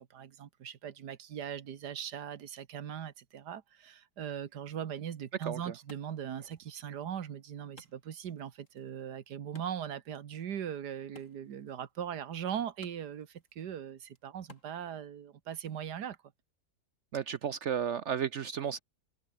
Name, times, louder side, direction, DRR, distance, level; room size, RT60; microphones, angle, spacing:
voice 1, 0.0-16.2, right 9 dB, 90° right, 1.8 m, -40 dB
Wood, 5.1-15.1, left 2 dB, 50° left, 5.7 m, -62 dB
voice 2, 17.1-18.8, right 8 dB, 60° right, 0.8 m, -33 dB
omnidirectional pair, 1.7 m